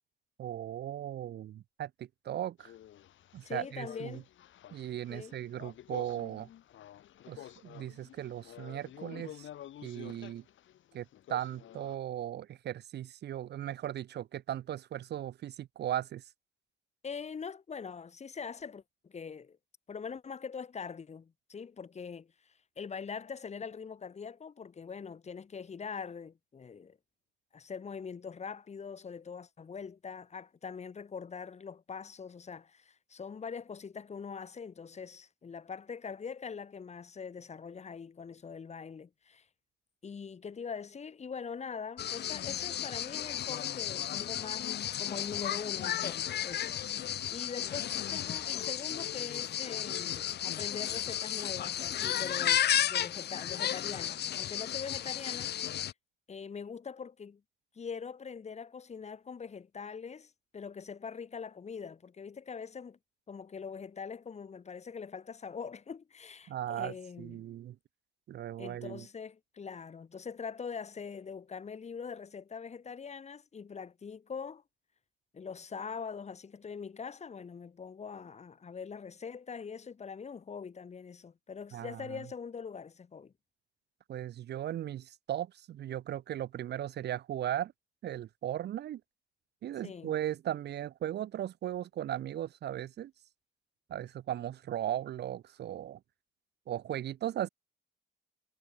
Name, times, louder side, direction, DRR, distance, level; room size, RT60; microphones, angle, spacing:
voice 1, 0.4-2.7 3.3-4.2 4.7-6.5 7.3-9.5 9.8-10.4 10.9-16.2 66.5-67.8 68.3-69.1 81.7-82.2 84.1-87.7 88.0-89.0 89.6-93.1 93.9-96.0 96.7-97.5, right 11 dB, 55° right, 0.5 m, -37 dB
sound 1, 2.6-12.0, left 12 dB, 75° left, 5.9 m, -50 dB
voice 2, 3.4-4.2 5.1-5.4 17.0-19.6 19.9-22.3 22.8-27.0 27.5-39.4 40.0-44.7 45.0-46.8 47.3-55.5 56.3-57.4 57.7-63.0 63.3-67.5 68.6-74.6 75.3-83.3 89.8-90.1, left 6 dB, 35° left, 1.3 m, -43 dB
sound 2, 42.0-55.9, left 11 dB, 55° left, 0.7 m, -33 dB
cardioid pair, 90°, 20 cm